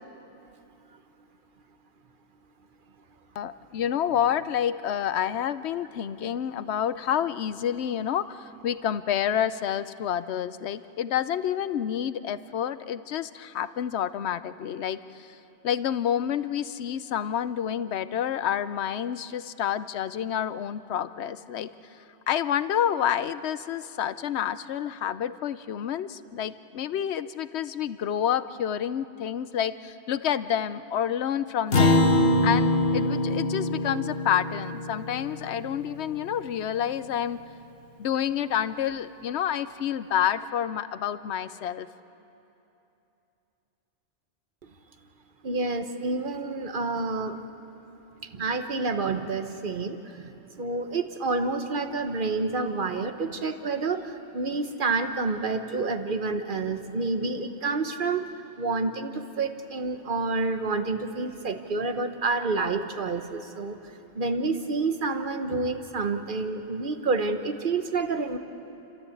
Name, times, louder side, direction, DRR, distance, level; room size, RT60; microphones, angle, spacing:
voice 1, 3.4-15.4 15.6-21.7 22.3-32.1 32.4-37.4 38.0-41.9, left 9 dB, 80° left, 14 dB, 1.0 m, -29 dB
Acoustic guitar, 31.7-36.4, left 1 dB, 60° left, 1.4 m, -24 dB
voice 2, 45.4-47.4 48.3-50.3 50.6-58.3 58.6-63.8 64.1-68.4, right 3 dB, 50° right, 8 dB, 1.3 m, -28 dB
29.5 x 13.5 x 8.6 m, 2.9 s
omnidirectional pair, 1.1 m